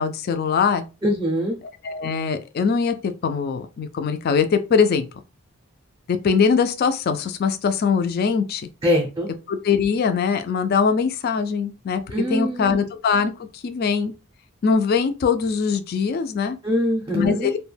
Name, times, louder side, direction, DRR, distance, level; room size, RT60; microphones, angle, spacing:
voice 1, 0.0-0.8 1.8-5.1 6.1-8.7 9.5-12.0 12.3-14.1 14.6-16.6 17.1-17.6, left 5 dB, 45° left, 0.3 m, -22 dB
voice 2, 1.0-1.6 8.8-9.3 12.1-12.7 16.6-17.5, equal, 15° right, 0.5 m, -23 dB
2.3 x 2.1 x 3.2 m
head